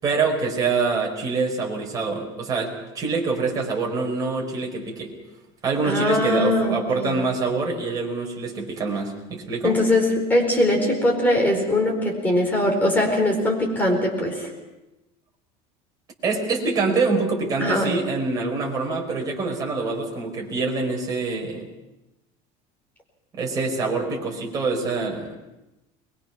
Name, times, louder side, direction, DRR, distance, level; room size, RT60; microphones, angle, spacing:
voice 1, 0.0-5.1 5.6-9.8 16.2-21.7 23.3-25.3, right 4 dB, 25° right, 0 dB, 4.6 m, -25 dB
voice 2, 5.8-7.2 9.6-14.5 17.6-17.9, left 1 dB, 10° left, 0 dB, 4.6 m, -21 dB
22.5 x 22.0 x 6.0 m, 1.0 s
cardioid pair, 170°, 15 cm